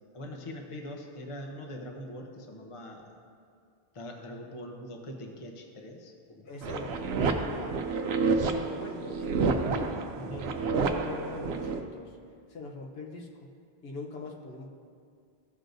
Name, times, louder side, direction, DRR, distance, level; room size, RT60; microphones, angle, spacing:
voice 1, 0.1-3.2 3.9-6.5 10.2-10.5, equal, 35° left, 2 dB, 0.8 m, -42 dB
voice 2, 6.4-7.8 8.2-9.7 10.3-12.2 12.5-13.5 13.8-14.7, left 3 dB, 75° left, -1 dB, 1.1 m, -42 dB
sound 1, 6.6-11.8, right 4 dB, 85° right, 0.9 m, -29 dB
15.5 x 6.4 x 2.6 m, 2.2 s
omnidirectional pair, 1.0 m